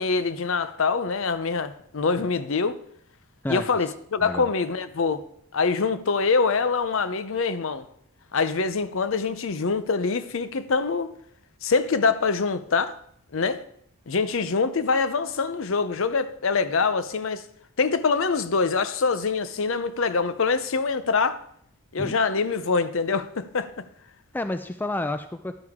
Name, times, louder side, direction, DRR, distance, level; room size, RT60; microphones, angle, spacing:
voice 1, 0.0-2.8 3.5-5.2 5.5-7.8 8.3-11.1 11.6-12.9 13.3-13.6 14.1-17.4 17.8-21.4 21.9-23.8, left 4 dB, 60° left, 0.6 m, -24 dB
voice 2, 24.3-25.6, left 1 dB, 10° left, 0.3 m, -30 dB
11.0 x 9.6 x 3.6 m
head